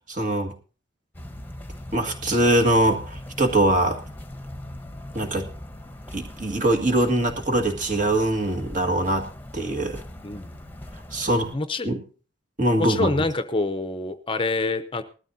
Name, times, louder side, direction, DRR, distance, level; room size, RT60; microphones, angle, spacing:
voice 1, 0.1-0.5 1.9-4.0 5.1-5.5 6.1-10.0 11.1-11.5 11.8-12.0 12.6-13.1, right 1 dB, 45° right, 4 dB, 1.9 m, -22 dB
sound 1, 1.1-11.5, left 1 dB, 10° left, 1.1 m, -40 dB
voice 2, 10.2-10.7 11.5-11.9 12.8-15.0, left 3 dB, 30° left, 10 dB, 0.7 m, -26 dB
20.0 x 13.0 x 2.8 m, 0.37 s
head